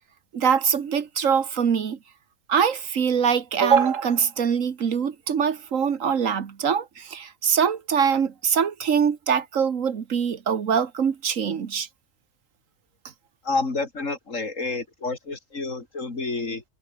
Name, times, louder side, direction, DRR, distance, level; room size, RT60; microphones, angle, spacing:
voice 1, 0.3-2.0 2.5-11.9, right 7 dB, 80° right, 1.7 m, -23 dB
voice 2, 13.4-16.6, left 3 dB, 75° left, 3.5 m, -29 dB
omnidirectional pair, 1.3 m